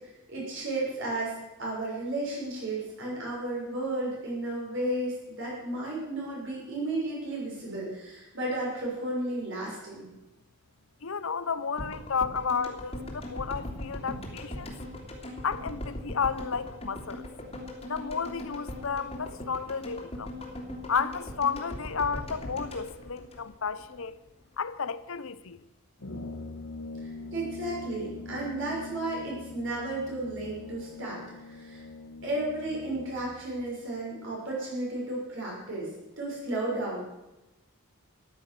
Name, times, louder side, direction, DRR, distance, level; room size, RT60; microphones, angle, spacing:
voice 1, 0.3-1.3 1.6-10.1 27.0-31.8 32.2-35.9 36.2-37.0, right 2 dB, 55° right, 5.9 m, -33 dB
voice 2, 11.0-14.7 15.4-17.2 17.9-20.3 20.9-24.2 24.6-25.6, left 6 dB, 60° left, 0.8 m, -32 dB
sound 1, 11.8-24.0 24.2-24.3, left 1 dB, 25° left, 2.8 m, -40 dB
Brass instrument, 26.0-33.5, left 3 dB, 80° left, 1.7 m, -42 dB
14.0 x 11.0 x 6.8 m
head